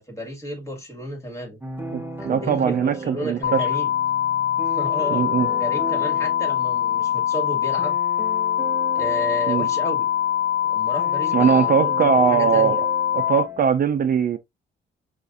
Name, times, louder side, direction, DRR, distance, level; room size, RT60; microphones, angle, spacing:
voice 1, 0.0-1.6 2.2-3.9 4.7-8.0 8.9-10.1 10.6-12.8, equal, 15° left, 2.1 m, -32 dB
sound 1, 1.6-13.7, right 2 dB, 10° right, 0.8 m, -36 dB
voice 2, 1.9-3.7 5.1-5.5 9.5-9.7 11.3-12.8 13.1-14.4, right 7 dB, 45° right, 0.5 m, -21 dB
sound 2, 3.4-13.4, left 10 dB, 55° left, 0.7 m, -23 dB
5.7 x 2.5 x 2.5 m
cardioid pair, 90°, 20 cm